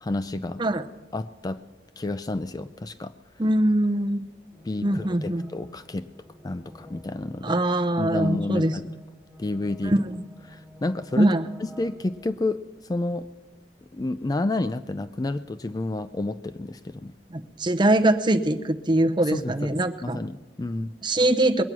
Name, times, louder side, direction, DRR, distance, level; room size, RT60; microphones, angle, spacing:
voice 1, 0.0-0.6 1.1-1.6 2.0-3.1 4.7-6.1 6.4-7.6 8.0-8.9 9.4-9.9 10.5-11.3 11.6-12.6 12.9-13.3 13.9-17.1 19.3-20.9, left 2 dB, 20° left, 12 dB, 0.4 m, -30 dB
voice 2, 3.4-4.2 4.8-5.4 7.4-8.9 9.8-10.2 11.2-11.5 17.3-20.2 21.0-21.6, right 1 dB, 25° right, 7 dB, 0.8 m, -22 dB
sound 1, 4.5-12.3, equal, ahead, 1.7 m, -49 dB
21.5 x 9.5 x 6.1 m, 1.1 s
head